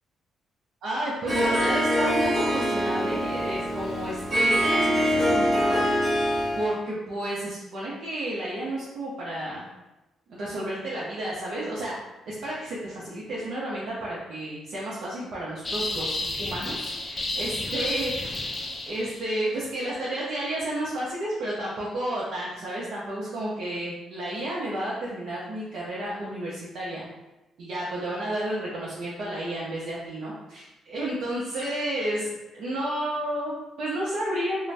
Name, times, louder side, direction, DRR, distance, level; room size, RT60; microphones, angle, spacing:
voice 1, 0.8-6.0 6.5-9.6 10.3-11.9 12.3-18.4 18.8-27.1 27.6-34.7, right 1 dB, 70° right, -7 dB, 0.6 m, -31 dB
Harp, 1.3-6.7, equal, 30° right, 1.5 m, -24 dB
sound 1, 15.6-19.3, left 2 dB, 30° left, 0.4 m, -31 dB
2.5 x 2.1 x 3.2 m, 1.0 s
cardioid pair, 90°, 0 cm